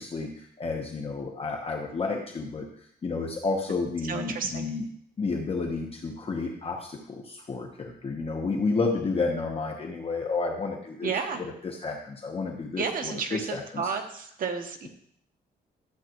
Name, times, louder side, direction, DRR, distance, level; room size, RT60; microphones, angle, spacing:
voice 1, 0.0-2.7 3.0-4.9 5.2-11.1 11.4-13.9, left 4 dB, 35° left, 1 dB, 1.1 m, -31 dB
voice 2, 4.1-4.7 11.0-11.5 12.8-14.9, right 5 dB, 55° right, 4 dB, 1.0 m, -31 dB
13.0 x 7.4 x 3.0 m, 0.68 s
cardioid pair, 140°, 18 cm